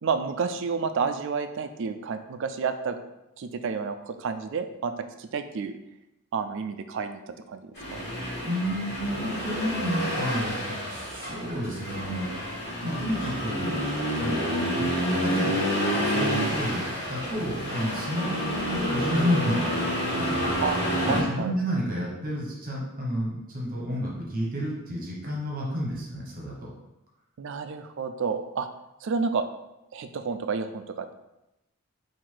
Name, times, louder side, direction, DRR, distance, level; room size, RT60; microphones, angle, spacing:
voice 1, 0.0-3.0 3.4-5.8 6.3-8.1 20.6-21.6 27.4-28.7 29.0-29.4 29.9-31.1, right 5 dB, 60° right, 9 dB, 0.3 m, -30 dB
Accelerating revving vroom, 7.8-21.2, equal, 50° left, 1.5 m, -29 dB
voice 2, 8.4-12.3 12.8-13.8 14.2-20.5 21.1-26.7, equal, 40° right, -3 dB, 1.0 m, -31 dB
3.8 x 2.6 x 4.6 m, 0.91 s
head